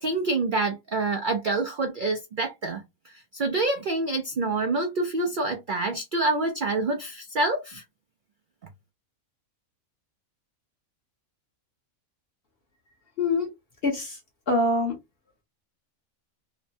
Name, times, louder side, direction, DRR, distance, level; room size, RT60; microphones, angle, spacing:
voice 1, 0.0-2.8 3.3-7.8, right 2 dB, 85° right, 0.4 m, -27 dB
voice 2, 13.2-13.5 13.8-14.2 14.5-14.9, left 2 dB, 50° left, 0.9 m, -24 dB
3.0 x 2.0 x 2.6 m
omnidirectional pair, 1.5 m